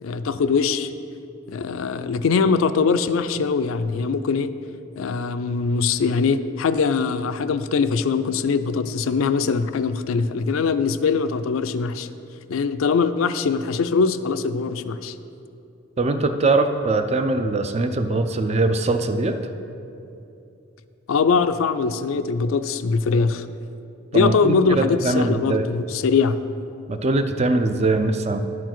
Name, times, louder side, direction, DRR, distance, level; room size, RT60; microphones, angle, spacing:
voice 1, 0.0-0.9 1.5-4.5 5.0-12.1 12.5-15.1 21.1-23.5 24.1-26.4, left 5 dB, 80° left, 11 dB, 0.4 m, -22 dB
voice 2, 16.0-19.4 24.1-25.6 26.9-28.4, right 2 dB, 30° right, 8 dB, 0.4 m, -22 dB
11.0 x 4.6 x 6.0 m, 2.7 s
head